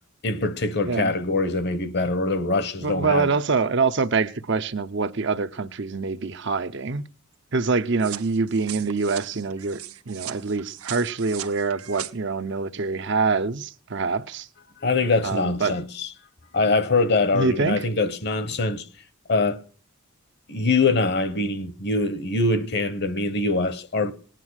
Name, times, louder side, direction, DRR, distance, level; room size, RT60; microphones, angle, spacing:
voice 1, 0.2-3.3 14.8-16.1 16.5-18.9 19.3-19.6 20.5-24.1, left 3 dB, 50° left, 1.1 m, -23 dB
voice 2, 2.8-7.0 7.5-9.8 10.1-14.5 15.2-15.8 17.3-17.9, right 4 dB, 55° right, 0.7 m, -25 dB
sound 1, 8.0-12.1, right 12 dB, 85° right, 0.9 m, -38 dB
19.0 x 9.1 x 6.4 m
head